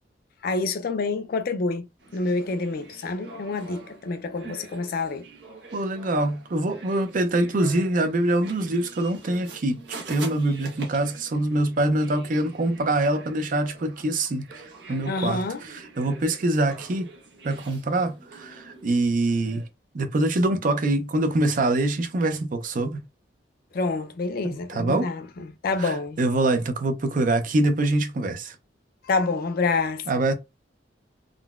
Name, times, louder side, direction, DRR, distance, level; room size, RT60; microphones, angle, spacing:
voice 1, 0.4-1.8 2.1-5.2 15.1-15.6 23.7-26.2 29.1-30.0, left 3 dB, 55° left, 0.4 m, -27 dB
sound 1, 2.0-19.7, right 3 dB, 70° right, 1.1 m, -45 dB
voice 2, 5.7-14.4 14.9-17.1 17.4-19.6 19.9-23.0 24.4-25.1 25.8-28.5 30.1-30.3, right 2 dB, 50° right, 0.5 m, -24 dB
3.7 x 2.1 x 2.3 m
head